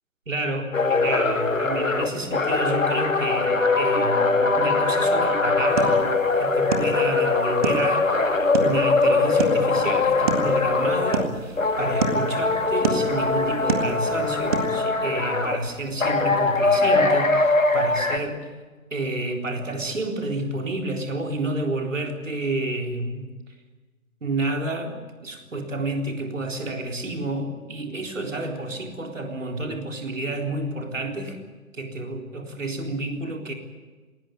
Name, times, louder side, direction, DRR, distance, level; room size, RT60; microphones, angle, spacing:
voice 1, 0.3-8.1 8.4-18.5 18.9-23.3 24.2-31.4 31.7-33.5, right 2 dB, 60° right, 3 dB, 3.9 m, -30 dB
sound 1, 0.7-11.3 11.6-15.6 16.0-18.2, left 3 dB, 65° left, 2.4 m, -22 dB
sound 2, 5.6-14.8, right 5 dB, 25° right, 1.9 m, -31 dB
19.5 x 19.5 x 9.3 m, 1.3 s
figure-of-eight pair, 145°, 42 cm